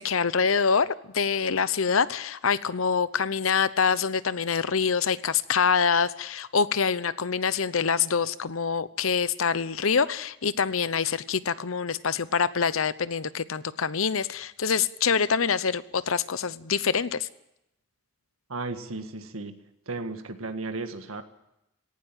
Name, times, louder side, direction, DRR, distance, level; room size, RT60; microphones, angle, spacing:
voice 1, 0.0-17.3, left 6 dB, 75° left, 16 dB, 0.8 m, -25 dB
voice 2, 18.5-21.2, right 3 dB, 90° right, 7 dB, 1.7 m, -35 dB
18.0 x 17.0 x 9.0 m, 0.86 s
head